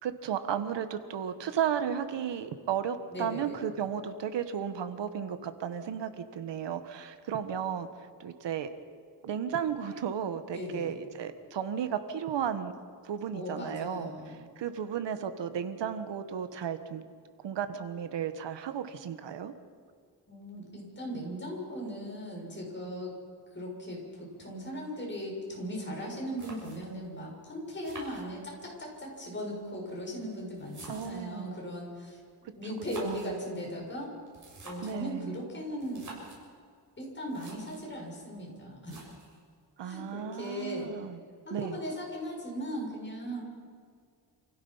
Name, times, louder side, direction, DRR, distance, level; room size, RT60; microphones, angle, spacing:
voice 1, 0.0-7.9 8.2-8.7 9.2-12.7 13.0-17.0 17.4-19.5 30.9-31.6 33.0-33.4 34.8-35.4 39.8-41.2 41.5-41.8, right 8 dB, 90° right, 10 dB, 1.5 m, -34 dB
voice 2, 3.1-3.6 10.5-10.9 13.3-14.4 20.3-23.1 23.5-32.2 32.5-34.1 34.6-36.1 37.0-39.1 39.8-40.9 41.4-43.4, equal, 25° left, -2 dB, 6.7 m, -38 dB
sound 1, 26.4-27.1 27.8-28.8 29.7-31.4 32.6-33.4 34.3-35.1 35.8-36.4 37.0-37.1 37.2-37.9 38.8-39.4, right 2 dB, 45° right, 7.3 m, -48 dB
28.0 x 16.5 x 5.7 m, 2.1 s
wide cardioid pair, 125°, 42 cm